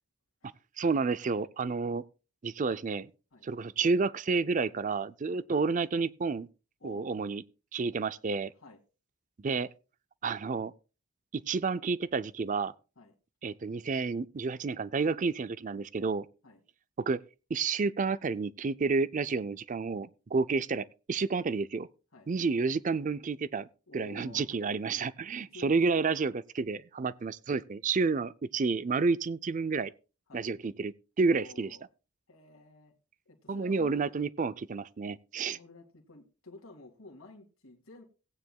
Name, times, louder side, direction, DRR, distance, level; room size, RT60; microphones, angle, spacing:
voice 1, 0.8-2.0 2.4-3.1 3.4-6.5 6.8-7.4 7.7-8.5 9.4-9.7 10.2-10.7 11.3-12.7 13.4-16.3 17.0-17.2 17.5-21.9 22.3-23.7 23.9-29.9 30.3-31.7 33.5-35.6, right 4 dB, 35° right, 0.4 m, -30 dB
voice 2, 23.9-24.5 25.4-26.0 30.3-30.5 31.3-31.8 32.3-32.9 33.3-34.1 35.5-38.0, left 3 dB, 65° left, 2.3 m, -51 dB
18.0 x 9.2 x 2.3 m
head